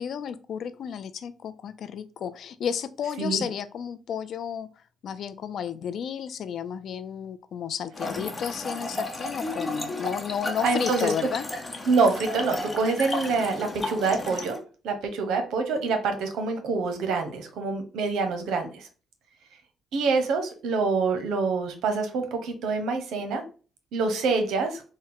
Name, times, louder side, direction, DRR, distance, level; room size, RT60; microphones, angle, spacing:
voice 1, 0.0-4.7 5.0-11.5, left 8 dB, 65° left, 12 dB, 0.4 m, -32 dB
Trickle dribble / Fill (with liquid), 7.9-14.6, left 2 dB, 20° left, 0.8 m, -33 dB
voice 2, 10.6-11.1 11.9-14.6 14.8-18.9 19.9-23.4 23.9-24.8, right 4 dB, 85° right, 6 dB, 0.8 m, -26 dB
4.2 x 2.1 x 3.8 m, 0.37 s
cardioid pair, 90°, 0 cm